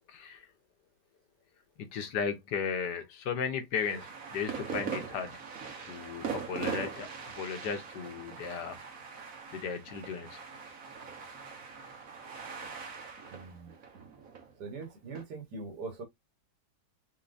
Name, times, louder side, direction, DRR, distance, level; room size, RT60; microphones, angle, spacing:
voice 1, 0.1-0.5 1.8-5.3 5.9-8.8 9.5-10.4, left 6 dB, 80° left, 1.6 m, -35 dB
sound 1, 3.8-15.2, right 6 dB, 55° right, 1.5 m, -41 dB
voice 2, 13.3-13.7 14.6-16.0, right 3 dB, 75° right, 2.0 m, -42 dB
4.5 x 3.8 x 2.5 m
omnidirectional pair, 1.8 m